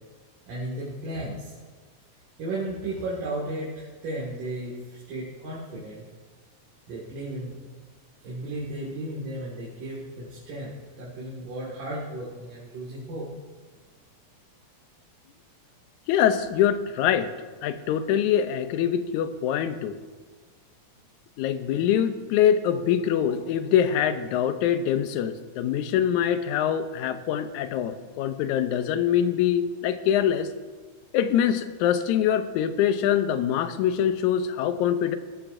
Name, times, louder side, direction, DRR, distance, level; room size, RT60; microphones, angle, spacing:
voice 1, 0.5-1.5 2.4-6.1 6.9-7.7 8.2-13.3 22.7-22.8, right 1 dB, 85° right, -6 dB, 3.6 m, -34 dB
voice 2, 16.1-17.3 17.6-19.9 21.4-30.5 31.1-35.2, left 9 dB, 75° left, 10 dB, 2.0 m, -24 dB
19.5 x 12.0 x 2.6 m, 1.4 s
omnidirectional pair, 3.6 m